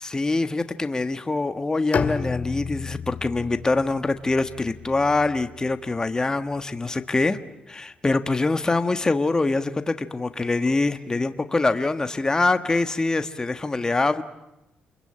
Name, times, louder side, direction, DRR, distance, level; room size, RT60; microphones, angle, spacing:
voice 1, 0.0-7.4 7.7-14.2, left 3 dB, 20° left, 9 dB, 1.4 m, -24 dB
Bowed string instrument, 1.9-5.9, left 6 dB, 50° left, 2.1 m, -32 dB
28.5 x 22.0 x 8.8 m, 0.93 s
cardioid pair, 85°, 3 cm